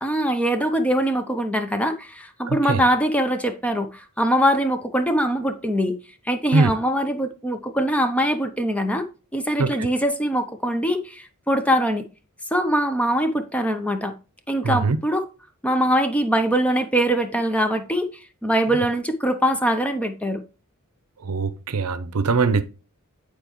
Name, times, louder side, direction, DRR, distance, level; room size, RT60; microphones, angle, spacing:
voice 1, 0.0-6.0 6.3-12.0 12.5-14.1 14.5-15.2 15.6-18.1 18.4-20.4, equal, 5° left, 0.6 m, -22 dB
voice 2, 2.5-2.8 6.5-6.7 9.6-9.7 14.6-15.0 21.2-22.6, right 4 dB, 75° right, 0.6 m, -21 dB
9.2 x 4.4 x 3.0 m
head